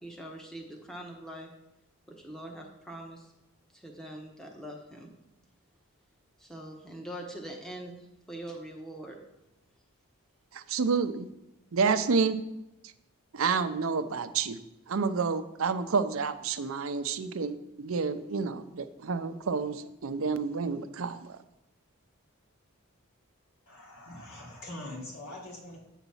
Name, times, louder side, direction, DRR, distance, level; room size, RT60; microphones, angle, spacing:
voice 1, 0.0-1.5 2.2-3.3 3.7-5.1 6.4-9.2, right 1 dB, ahead, 1 dB, 1.0 m, -43 dB
voice 2, 10.5-11.3 11.7-12.4 13.3-14.6 14.9-21.4, right 5 dB, 70° right, 11 dB, 0.5 m, -29 dB
voice 3, 23.7-25.8, left 1 dB, 85° left, -2 dB, 2.6 m, -43 dB
9.1 x 4.0 x 7.0 m, 0.91 s
head